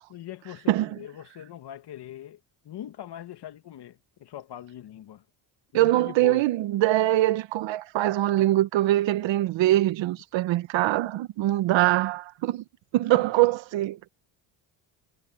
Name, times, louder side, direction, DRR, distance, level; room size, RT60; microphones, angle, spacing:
voice 1, 0.1-2.4 2.6-5.2 5.7-6.5 13.1-13.6, left 12 dB, 60° left, 2.4 m, -41 dB
voice 2, 0.7-1.0 5.7-12.6 12.9-14.0, right 15 dB, 70° right, 1.2 m, -23 dB
cardioid pair, 95°, 46 cm